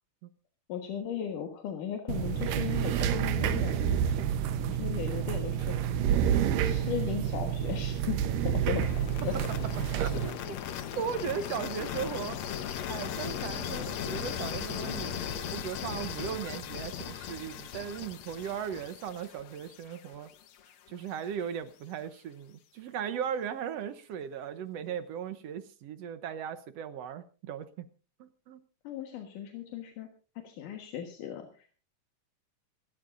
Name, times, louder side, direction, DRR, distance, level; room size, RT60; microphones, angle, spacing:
voice 1, 0.7-4.1 4.6-5.9 6.6-8.9 9.2-9.3 10.0-10.2 28.8-30.1 30.4-31.8, left 9 dB, 80° left, 4 dB, 3.1 m, -37 dB
sound 1, 2.1-10.3, right 9 dB, 85° right, 2.6 m, -29 dB
sound 2, 8.8-20.7, left 8 dB, 65° left, 2.1 m, -38 dB
voice 2, 10.0-10.6 10.9-12.4 12.9-20.3 20.9-27.9 28.2-28.6, right 8 dB, 65° right, 12 dB, 1.7 m, -37 dB
26.0 x 13.0 x 2.6 m, 0.35 s
omnidirectional pair, 3.7 m